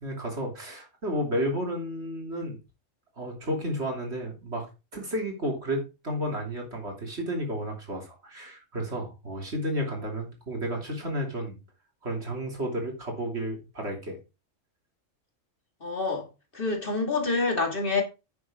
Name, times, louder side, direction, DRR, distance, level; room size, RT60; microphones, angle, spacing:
voice 1, 0.0-2.6 3.2-4.7 4.9-11.6 12.0-14.2, equal, 55° right, 3.3 m, -32 dB
voice 2, 15.8-16.3 16.5-18.0, left 3 dB, 45° left, 2.5 m, -27 dB
9.7 x 6.9 x 3.7 m
omnidirectional pair, 1.3 m